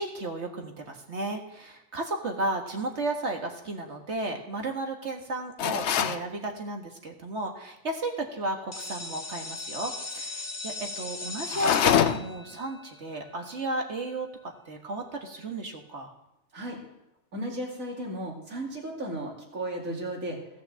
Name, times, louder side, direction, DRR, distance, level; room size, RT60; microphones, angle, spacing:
voice 1, 0.0-16.1, right 2 dB, 55° right, 3 dB, 1.8 m, -34 dB
sound 1, 5.6-6.2 11.5-12.4, left 9 dB, 60° left, 0.9 m, -24 dB
sound 2, 8.7-14.4, left 2 dB, 35° left, 1.3 m, -39 dB
voice 2, 17.3-20.4, right 1 dB, 80° right, -1 dB, 3.1 m, -34 dB
16.0 x 6.3 x 7.5 m, 0.88 s
omnidirectional pair, 1.4 m